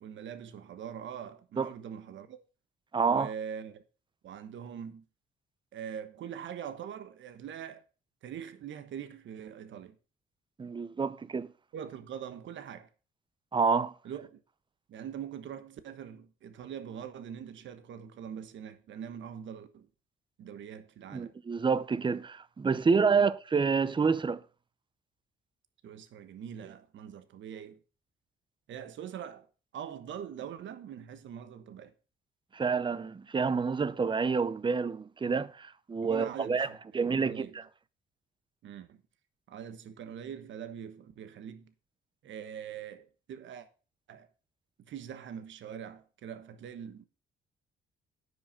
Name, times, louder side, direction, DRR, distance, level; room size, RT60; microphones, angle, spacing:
voice 1, 0.0-2.4 3.1-3.8 4.2-5.0 5.7-7.8 8.2-10.0 11.7-12.9 14.0-14.4 14.9-19.9 20.4-21.4 23.1-23.3 25.8-27.8 28.7-29.5 29.7-31.9 36.0-36.8 37.1-37.6 38.6-39.0 39.5-41.7 42.2-43.7 44.1-44.3 44.9-47.0, right 8 dB, 70° right, 1.2 m, -43 dB
voice 2, 2.9-3.3 10.6-11.5 13.5-13.9 21.1-24.4 32.5-36.7 36.9-37.6, right 5 dB, 25° right, 0.7 m, -28 dB
9.5 x 6.4 x 5.9 m
cardioid pair, 90°, 20 cm